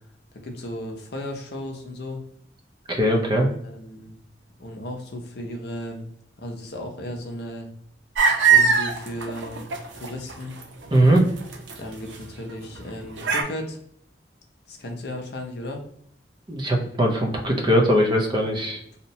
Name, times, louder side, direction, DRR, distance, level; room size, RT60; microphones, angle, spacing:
voice 1, 0.4-2.2 3.6-4.2 4.6-6.1 6.4-7.7 8.5-9.7 9.9-10.6 11.8-13.8 14.7-15.8 18.7-19.0, left 1 dB, 60° left, 2 dB, 0.6 m, -35 dB
voice 2, 2.9-3.5 10.9-11.3 16.5-18.8, equal, 25° right, 1 dB, 0.5 m, -20 dB
sound 1, 8.2-10.3 10.6-11.8 12.1-12.2 12.8-12.9 13.2-13.4, right 6 dB, 85° right, 0.5 m, -20 dB
2.8 x 2.1 x 2.7 m, 0.68 s
head